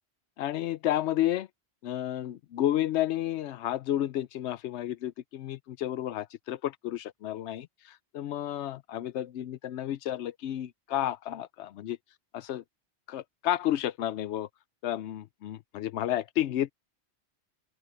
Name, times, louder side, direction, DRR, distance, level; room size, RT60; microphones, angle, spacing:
voice 1, 0.4-1.5 1.8-12.0 12.3-12.6 13.1-14.5 14.8-16.7, left 12 dB, 85° left, 0.9 m, -31 dB
open air
omnidirectional pair, 1.1 m